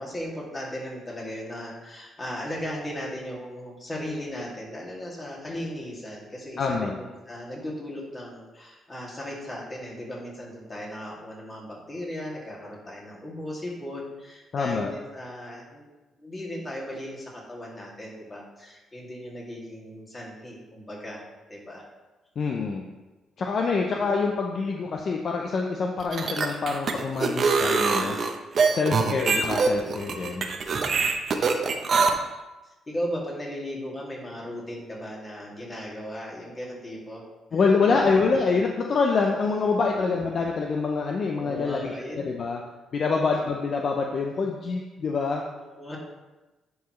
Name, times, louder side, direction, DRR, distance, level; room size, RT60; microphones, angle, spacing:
voice 1, 0.0-15.8 16.2-21.2 21.5-21.8 32.6-37.2 37.5-38.0 39.9-40.2 41.3-42.2 43.2-43.3 45.5-46.0, equal, 25° left, -4 dB, 2.4 m, -37 dB
voice 2, 6.6-7.0 14.5-14.9 22.4-22.8 23.4-28.2 28.7-30.5 37.5-42.6 42.9-45.4, left 4 dB, 50° left, 1 dB, 0.6 m, -26 dB
sound 1, 26.0-32.1, right 4 dB, 50° right, 0.7 m, -24 dB
10.5 x 4.8 x 3.2 m, 1.1 s
cardioid pair, 90°, 0 cm